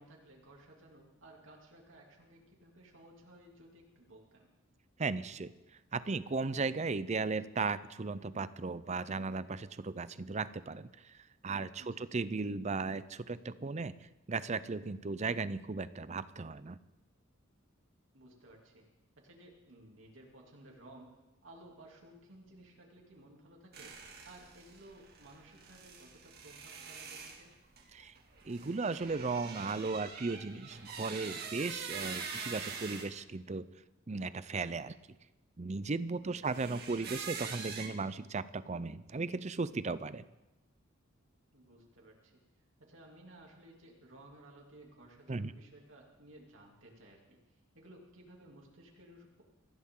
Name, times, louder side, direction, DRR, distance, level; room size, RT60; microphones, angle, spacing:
voice 1, 0.0-4.5 11.8-12.0 18.1-18.9 19.2-21.1 21.4-24.0 24.2-27.5 36.2-36.4 41.5-42.4 42.8-47.4 47.7-49.4, right 1 dB, 65° right, -1 dB, 2.9 m, -57 dB
voice 2, 5.0-5.5 5.9-11.2 11.4-13.9 14.3-16.8 27.9-28.1 28.4-33.7 34.1-35.0 35.6-40.2 45.3-45.5, right 4 dB, 35° right, 15 dB, 0.5 m, -36 dB
sound 1, 23.7-33.1 36.4-37.9, right 5 dB, 50° right, 2.2 m, -44 dB
24.0 x 15.5 x 3.8 m, 0.98 s
head